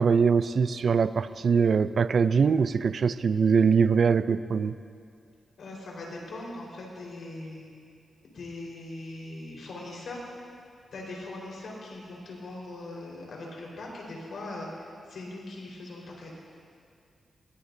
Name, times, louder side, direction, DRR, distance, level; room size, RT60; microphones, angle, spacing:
voice 1, 0.0-4.8, right 5 dB, 60° right, 13 dB, 0.4 m, -22 dB
voice 2, 5.6-7.7 8.2-10.2 10.9-14.7 15.1-16.4, left 2 dB, 75° left, -3 dB, 4.5 m, -40 dB
21.5 x 18.0 x 2.7 m, 2.3 s
cardioid pair, 90°, 0 cm